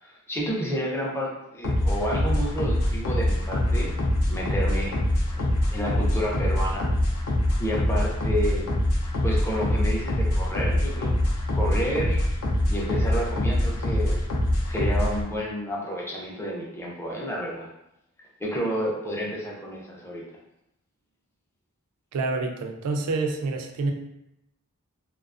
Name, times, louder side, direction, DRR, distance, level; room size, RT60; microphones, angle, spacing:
voice 1, 0.0-3.9 4.3-4.9 5.4-6.9 7.6-8.7 9.2-11.1 11.5-12.2 12.7-14.2 14.7-17.7 18.4-20.2, equal, 10° left, -3 dB, 0.4 m, -30 dB
sound 1, 1.6-15.2, left 1 dB, 70° left, 0.5 m, -24 dB
voice 2, 22.1-23.9, right 3 dB, 90° right, 4 dB, 0.4 m, -27 dB
2.3 x 2.3 x 2.3 m, 0.84 s
head